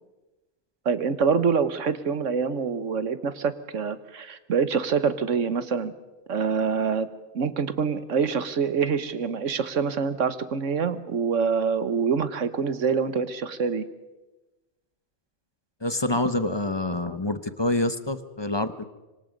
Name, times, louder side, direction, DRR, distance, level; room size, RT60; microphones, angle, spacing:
voice 1, 0.8-5.9 6.3-7.1 7.3-13.8, right 6 dB, 85° right, 12 dB, 1.6 m, -25 dB
voice 2, 15.8-18.8, left 1 dB, 25° left, 11 dB, 0.9 m, -26 dB
25.5 x 25.0 x 5.3 m, 1.1 s
omnidirectional pair, 1.2 m